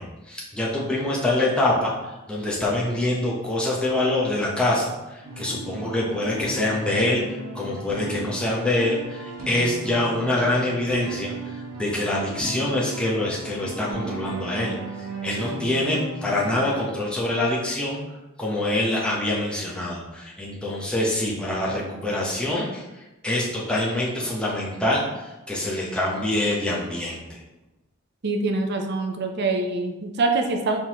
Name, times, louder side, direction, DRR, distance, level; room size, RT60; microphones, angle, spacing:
voice 1, 0.0-7.2 7.5-14.8 15.2-18.0 18.4-27.4, left 1 dB, 5° left, -5 dB, 0.9 m, -25 dB
sound 1, 5.2-16.8, right 1 dB, 75° right, 1.1 m, -35 dB
voice 2, 28.2-30.8, right 3 dB, 50° right, 4 dB, 0.6 m, -24 dB
4.7 x 3.8 x 3.0 m, 1.0 s
head